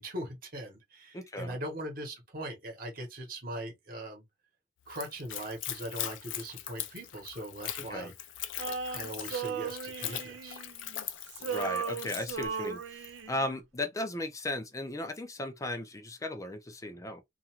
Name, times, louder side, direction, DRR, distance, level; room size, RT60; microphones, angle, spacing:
voice 1, 0.0-4.2 4.9-8.1 8.9-10.6, right 1 dB, 50° right, 1.0 m, -40 dB
voice 2, 1.1-1.6 7.9-8.1 11.4-17.2, left 1 dB, 20° left, 0.5 m, -36 dB
Splash splatter / Trickle dribble, 4.9-13.2, left 11 dB, 85° left, 0.4 m, -41 dB
Male singing, 8.6-11.0 11.3-13.5, right 6 dB, 70° right, 0.3 m, -37 dB
2.4 x 2.2 x 2.9 m
head